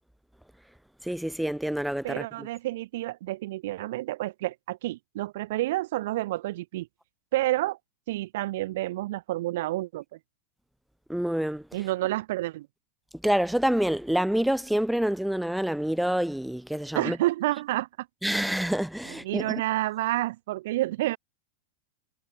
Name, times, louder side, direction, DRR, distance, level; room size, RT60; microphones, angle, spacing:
voice 1, 1.1-2.2 11.1-11.6 13.2-17.2 18.2-19.6, equal, ahead, 1.6 m, -27 dB
voice 2, 2.0-6.9 7.3-7.8 8.1-10.2 11.7-12.7 16.9-18.1 19.0-21.2, right 17 dB, 55° right, 5.6 m, -29 dB
figure-of-eight pair, 90°, 0 cm